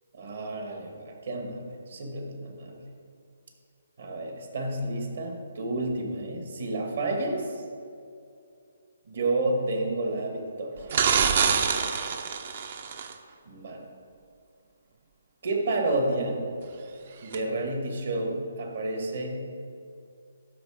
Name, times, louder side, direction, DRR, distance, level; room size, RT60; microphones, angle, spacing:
voice 1, 0.1-2.8 4.0-7.6 9.1-10.9 13.5-13.8 15.4-16.4 17.2-19.4, right 2 dB, 65° right, 2 dB, 1.8 m, -30 dB
sound 1, 10.9-13.1 17.3-17.4, right 6 dB, 50° right, 0.6 m, -25 dB
12.0 x 4.0 x 5.1 m, 2.4 s
hypercardioid pair, 145°, 0 cm